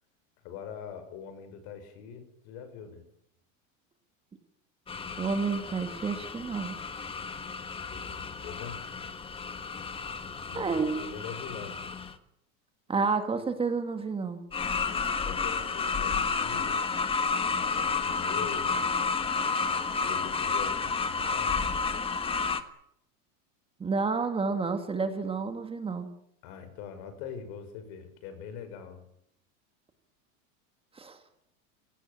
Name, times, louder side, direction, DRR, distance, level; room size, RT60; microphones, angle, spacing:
voice 1, 0.4-3.0 7.9-8.8 10.5-11.8 15.0-16.8 17.4-18.8 20.0-21.6 26.4-29.0, left 7 dB, 55° left, 10 dB, 6.4 m, -43 dB
sound 1, 4.9-12.1 14.5-22.6, left 5 dB, 15° left, 1.5 m, -31 dB
voice 2, 5.2-6.8 10.5-11.0 12.9-14.4 23.8-26.1 31.0-31.2, right 4 dB, 15° right, 7 dB, 2.0 m, -30 dB
28.0 x 17.0 x 8.8 m, 0.74 s
supercardioid pair, 150°, 39 cm